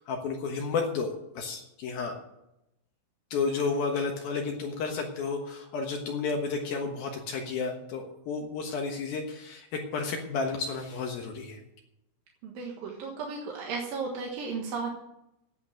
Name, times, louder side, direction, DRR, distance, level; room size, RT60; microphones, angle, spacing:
voice 1, 0.0-2.1 3.3-11.6, left 4 dB, 65° left, 2 dB, 2.5 m, -32 dB
voice 2, 12.4-14.9, right 4 dB, 65° right, 0 dB, 2.5 m, -34 dB
11.0 x 8.3 x 9.0 m, 0.87 s
omnidirectional pair, 5.7 m